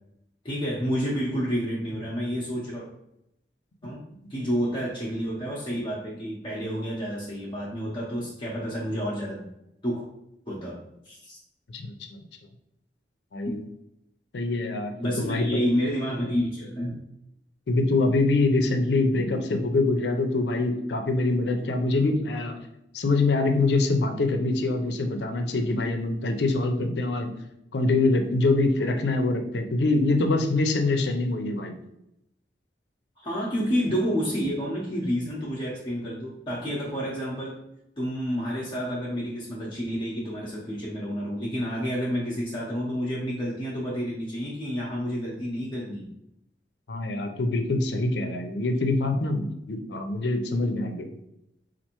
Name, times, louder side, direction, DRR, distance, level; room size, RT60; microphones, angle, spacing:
voice 1, 0.4-2.8 3.8-4.0 4.3-9.4 9.8-10.0 10.5-10.8 11.0-11.4 15.0-16.9 33.2-37.6 38.0-46.1, equal, 30° left, -6 dB, 0.6 m, -29 dB
voice 2, 13.3-13.6 14.3-15.6 17.7-22.6 22.9-27.3 27.7-31.7 46.9-51.1, left 2 dB, 85° left, 5 dB, 0.5 m, -24 dB
4.4 x 2.5 x 2.9 m, 0.83 s
head